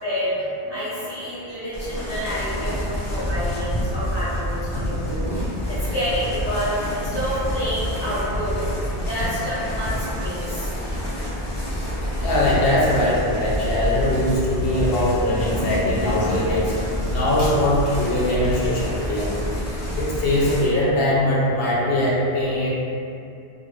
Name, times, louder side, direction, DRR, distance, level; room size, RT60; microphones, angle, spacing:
voice 1, 0.0-5.4 5.7-10.7 15.5-16.6 16.9-17.2 20.8-20.9, equal, 30° right, -13 dB, 0.5 m, -29 dB
sound 1, 1.7-20.6, equal, 40° left, 0.4 m, -28 dB
voice 2, 12.2-16.7 17.1-19.3 20.0-22.7, left 1 dB, 70° left, -6 dB, 0.8 m, -21 dB
2.4 x 2.1 x 3.1 m, 2.6 s
omnidirectional pair, 1.1 m